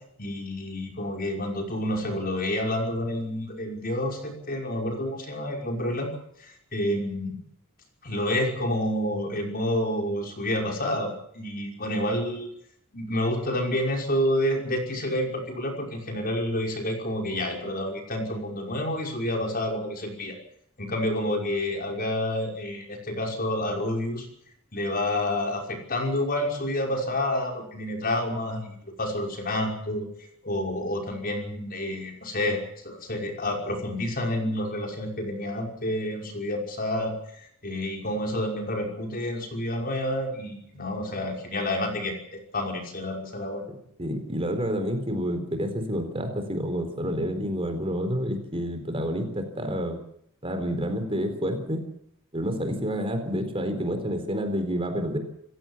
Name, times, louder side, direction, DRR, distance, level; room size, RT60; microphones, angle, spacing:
voice 1, 0.2-6.1 6.4-7.4 8.0-12.5 12.9-20.4 20.8-24.3 24.7-30.1 30.4-43.6, left 1 dB, 45° left, 2 dB, 5.8 m, -29 dB
voice 2, 44.0-50.0 50.4-51.8 52.3-55.2, equal, 25° right, 7 dB, 4.0 m, -29 dB
28.5 x 15.5 x 7.4 m, 0.69 s
head